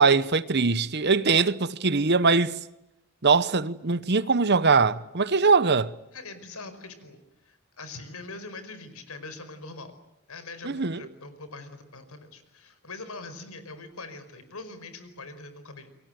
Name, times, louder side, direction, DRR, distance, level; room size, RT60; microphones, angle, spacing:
voice 1, 0.0-2.5 3.2-5.9 10.6-11.0, right 4 dB, 50° right, 1.0 m, -22 dB
voice 2, 6.1-9.9 10.3-15.9, left 3 dB, 85° left, 5.1 m, -42 dB
30.0 x 23.5 x 7.8 m
head